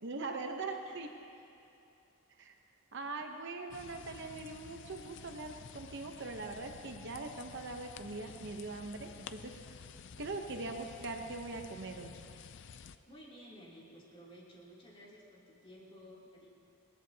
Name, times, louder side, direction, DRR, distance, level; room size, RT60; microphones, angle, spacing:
voice 1, 0.0-1.1 2.4-2.5 2.9-9.5 10.2-12.1, right 3 dB, 55° right, 4 dB, 0.9 m, -41 dB
sound 1, 3.7-13.0, left 6 dB, 55° left, 0.5 m, -51 dB
voice 2, 13.1-16.5, equal, 25° left, -6 dB, 3.1 m, -54 dB
20.5 x 18.5 x 2.9 m, 2.8 s
head